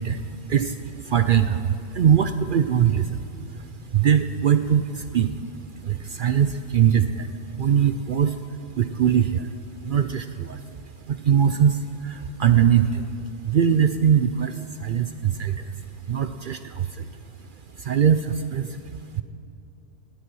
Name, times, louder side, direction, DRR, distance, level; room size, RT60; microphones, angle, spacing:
voice 1, 0.0-19.2, right 8 dB, 70° right, 10 dB, 0.5 m, -23 dB
17.5 x 11.5 x 6.1 m, 2.7 s
omnidirectional pair, 1.4 m